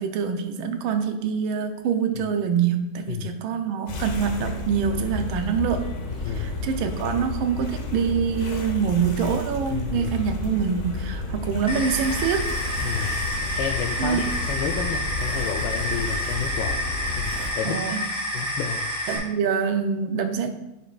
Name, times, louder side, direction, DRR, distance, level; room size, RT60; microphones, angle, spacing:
voice 1, 0.0-5.9 6.3-12.5 14.0-14.2 17.6-18.1 19.1-20.5, right 7 dB, 90° right, 7 dB, 1.5 m, -25 dB
sound 1, 3.9-17.5, left 3 dB, 50° left, 0.9 m, -31 dB
voice 2, 9.7-10.1 12.8-13.1 13.6-17.3 17.6-17.8 18.3-18.8, left 8 dB, 75° left, 2 dB, 1.2 m, -31 dB
sound 2, 11.7-19.2, left 1 dB, 5° right, 1.2 m, -29 dB
9.5 x 5.0 x 2.4 m, 0.95 s
omnidirectional pair, 2.2 m